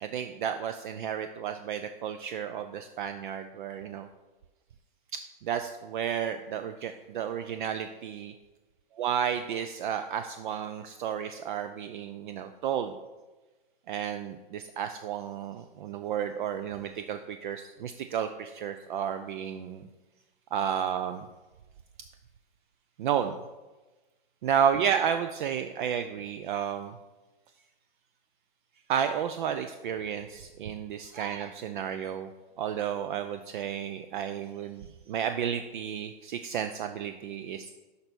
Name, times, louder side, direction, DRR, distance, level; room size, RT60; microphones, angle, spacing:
voice 1, 0.0-4.1 5.4-8.3 9.0-12.9 13.9-19.9 20.5-21.3 23.0-23.3 24.4-27.0 28.9-32.3 32.6-37.7, right 8 dB, 60° right, 9 dB, 0.5 m, -32 dB
6.6 x 5.5 x 6.1 m, 1.2 s
hypercardioid pair, 150°, 29 cm